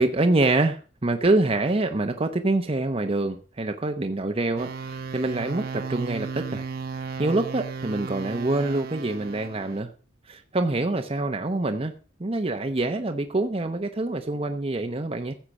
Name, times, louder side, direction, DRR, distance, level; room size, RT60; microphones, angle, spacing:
voice 1, 0.0-6.7 7.2-9.9 10.3-11.9 12.2-15.3, right 2 dB, 30° right, 5 dB, 0.8 m, -25 dB
sound 1, 4.6-9.8, right 4 dB, 50° right, 1.0 m, -35 dB
15.0 x 7.5 x 5.2 m, 0.37 s
head